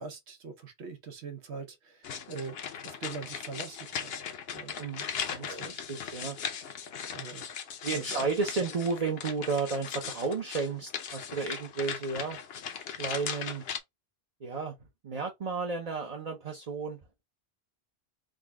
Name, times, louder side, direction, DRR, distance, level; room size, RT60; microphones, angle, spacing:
voice 1, 0.0-2.6 2.8-4.1 4.5-5.1 5.5-5.8 7.1-7.5 7.9-8.3, right 4 dB, 85° right, 1.1 m, -42 dB
sound 1, 2.0-13.8, left 7 dB, 70° left, 0.9 m, -38 dB
voice 2, 4.8-6.4 7.8-12.4 13.0-13.6 14.4-14.7 15.0-17.0, right 4 dB, 40° right, 0.8 m, -33 dB
3.7 x 2.2 x 3.5 m
omnidirectional pair, 1.1 m